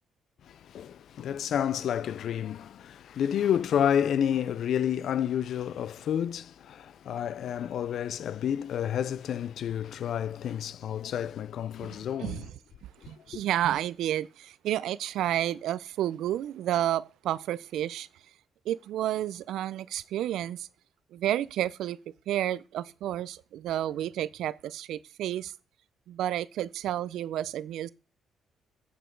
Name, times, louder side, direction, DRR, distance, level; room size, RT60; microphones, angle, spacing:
voice 1, 0.4-12.4 13.0-13.4, left 9 dB, 70° left, 0.3 m, -30 dB
voice 2, 11.8-12.5 13.1-18.1 18.7-20.7 21.1-22.0 22.3-25.5 26.1-27.9, right 12 dB, 80° right, 0.4 m, -31 dB
8.4 x 5.0 x 4.5 m
cardioid pair, 90°, 0 cm